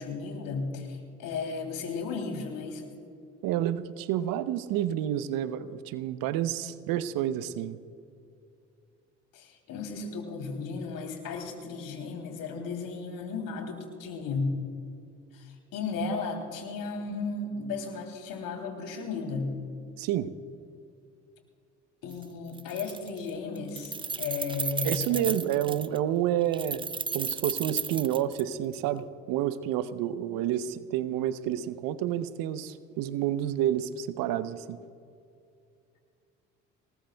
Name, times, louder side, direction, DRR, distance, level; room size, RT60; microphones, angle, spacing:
voice 1, 0.0-2.9 6.5-6.7 9.3-14.6 15.3-19.6 22.0-25.4 30.6-30.8, left 4 dB, 65° left, 3 dB, 3.1 m, -35 dB
voice 2, 3.4-7.8 20.0-20.3 24.8-26.8 27.1-34.8, right 11 dB, 65° right, 14 dB, 0.8 m, -29 dB
Keys jangling, 22.1-22.2 22.5-23.3 23.6-26.0 26.5-28.8, right 5 dB, 15° right, 0.4 m, -34 dB
25.5 x 19.5 x 2.3 m, 2.5 s
hypercardioid pair, 55°, 37 cm